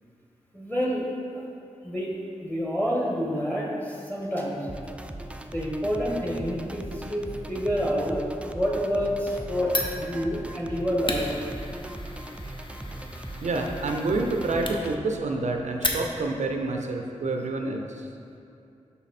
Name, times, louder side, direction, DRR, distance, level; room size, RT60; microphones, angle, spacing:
voice 1, 0.5-1.0 1.3-1.4 1.8-2.1 2.4-4.7 5.5-8.2 8.5-11.3, equal, 15° left, -3 dB, 1.4 m, -28 dB
sound 1, 4.7-15.0, right 1 dB, 10° right, 0.3 m, -39 dB
Fire, 9.7-16.5, left 2 dB, 40° left, 0.6 m, -35 dB
voice 2, 13.4-18.1, right 2 dB, 65° right, 2 dB, 0.5 m, -28 dB
5.6 x 4.1 x 4.1 m, 2.6 s
cardioid pair, 50°, 13 cm